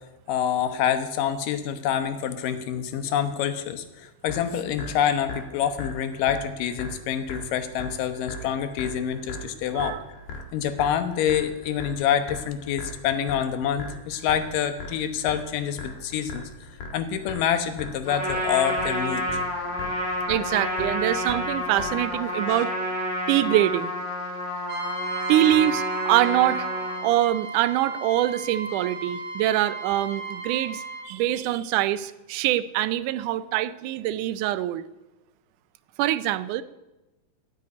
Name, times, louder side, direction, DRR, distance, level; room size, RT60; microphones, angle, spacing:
voice 1, 0.3-10.0 10.5-16.4 16.9-19.4 22.5-22.6, left 9 dB, 90° left, 9 dB, 2.7 m, -27 dB
sound 1, 4.3-22.3, left 2 dB, 70° left, 3.1 m, -39 dB
Trumpet, 18.0-27.1, equal, 5° left, 3.5 m, -29 dB
voice 2, 20.3-22.7 23.3-23.9 25.3-26.7 27.0-34.8 36.0-36.6, right 14 dB, 80° right, 15 dB, 2.1 m, -24 dB
Trumpet 2, 24.7-31.1, right 3 dB, 40° right, 3.3 m, -35 dB
13.5 x 6.6 x 9.6 m, 1.0 s
omnidirectional pair, 3.7 m